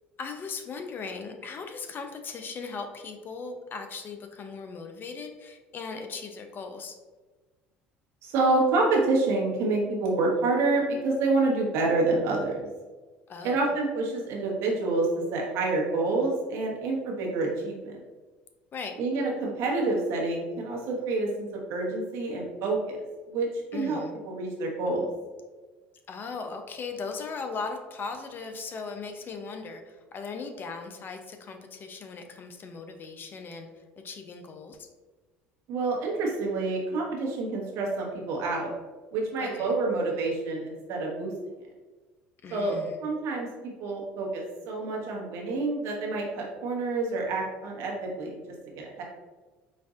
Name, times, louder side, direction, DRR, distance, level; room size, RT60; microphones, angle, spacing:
voice 1, 0.2-7.0 13.3-13.6 18.7-18.9 23.7-24.1 26.1-33.7 34.0-34.9 39.4-39.8 42.4-43.0, left 4 dB, 40° left, 5 dB, 0.6 m, -38 dB
voice 2, 8.2-12.7 13.4-18.0 19.0-23.0 23.3-23.5 23.7-24.0 24.2-25.1 35.7-38.7 39.1-41.3 42.5-49.0, right 3 dB, 65° right, -2 dB, 1.2 m, -28 dB
5.2 x 2.6 x 2.4 m, 1.3 s
hypercardioid pair, 75°, 5 cm